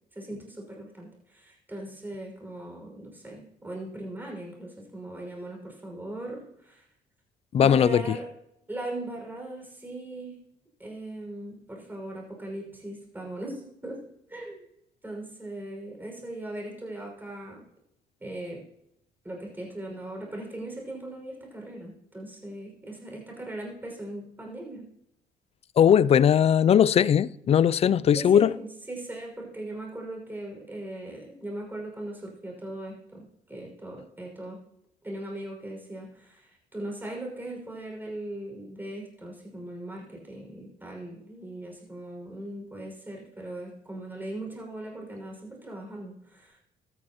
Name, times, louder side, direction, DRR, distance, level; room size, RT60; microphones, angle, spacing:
voice 1, 0.1-6.8 7.6-8.3 8.7-10.4 10.8-14.0 14.3-14.7 15.0-17.6 18.2-18.6 19.2-24.9 28.1-34.6 35.0-46.6, right 1 dB, 10° right, 6.1 m, -39 dB
voice 2, 7.5-8.0 25.8-28.5, left 8 dB, 40° left, 0.4 m, -19 dB
14.0 x 13.5 x 3.0 m
cardioid pair, 105°, 16 cm